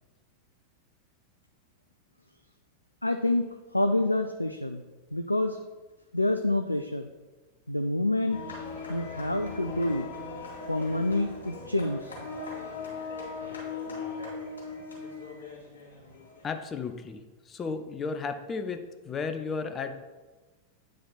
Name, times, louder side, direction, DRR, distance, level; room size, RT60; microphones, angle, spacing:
voice 1, 3.0-4.8 5.1-5.6 6.1-7.1 7.7-8.4 8.9-10.1 10.7-12.1, left 2 dB, 85° left, 7 dB, 0.3 m, -27 dB
sound 1, 8.3-16.6, left 4 dB, 70° left, 2.6 m, -39 dB
voice 2, 16.4-18.8 19.1-19.9, left 5 dB, 20° left, 7 dB, 0.7 m, -34 dB
8.9 x 5.1 x 4.1 m, 1.2 s
figure-of-eight pair, 90°, 0 cm